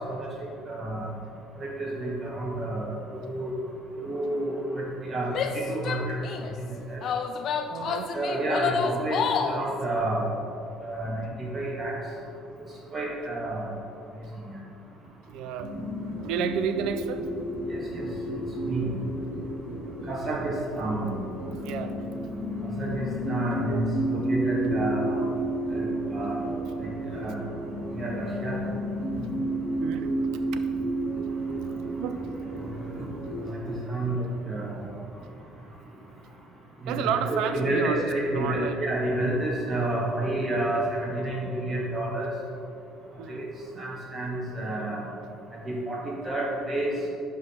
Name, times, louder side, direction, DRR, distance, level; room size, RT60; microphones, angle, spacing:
voice 1, 0.7-1.1 1.6-3.5 4.0-6.2 6.6-7.0 8.1-10.2 10.8-11.9 12.9-13.8 14.4-14.6 17.7-18.1 18.7-19.0 20.1-21.2 22.7-23.8 24.1-25.3 25.7-26.4 26.8-27.5 27.9-28.6 33.5-34.9 36.8-42.3 43.3-43.5 43.8-45.0 45.6-46.9, right 1 dB, 30° right, -3 dB, 1.8 m, -30 dB
Female speech woman speaking / Yell, 5.3-6.5 7.0-9.7, left 7 dB, 50° left, 0.5 m, -29 dB
voice 2, 7.7-8.1 15.3-15.7 16.2-17.2 21.6-22.0 23.6-23.8 29.1-29.3 29.8-30.6 32.0-32.2 36.9-38.1 38.3-38.8 43.2-43.4, right 7 dB, 65° right, 10 dB, 0.5 m, -31 dB
sound 1, 15.6-33.5, right 1 dB, 85° right, 1.7 m, -31 dB
11.0 x 3.7 x 4.4 m, 2.6 s
figure-of-eight pair, 55°, 0 cm